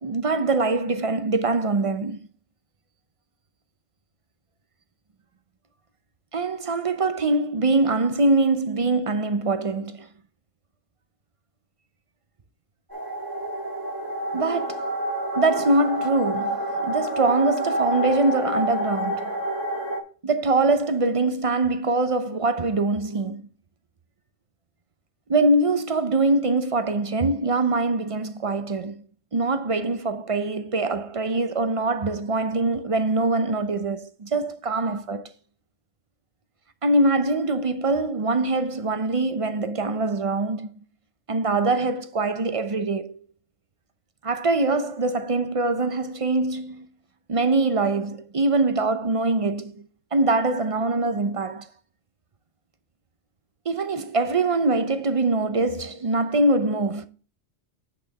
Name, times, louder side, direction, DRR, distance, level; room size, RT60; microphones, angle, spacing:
voice 1, 0.0-2.2 6.3-10.1 14.3-14.8 15.3-19.3 20.2-23.5 25.3-29.0 29.3-35.3 36.8-40.7 41.3-43.2 44.2-46.9 47.3-49.9 50.1-51.7 53.7-57.1, right 2 dB, 40° right, 0.5 m, -23 dB
sound 1, 12.9-20.0, right 1 dB, 15° right, 1.7 m, -28 dB
8.8 x 6.2 x 4.0 m
omnidirectional pair, 1.3 m